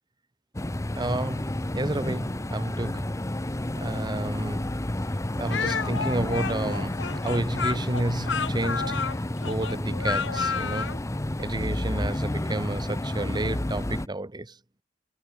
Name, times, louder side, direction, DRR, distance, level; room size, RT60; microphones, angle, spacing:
sound 1, 0.5-14.1, left 1 dB, 15° left, 0.8 m, -31 dB
voice 1, 1.0-3.2 3.7-4.8 5.1-11.0 11.4-14.6, right 1 dB, 25° right, 1.1 m, -31 dB
Speech, 5.5-11.0, left 5 dB, 85° left, 1.7 m, -31 dB
head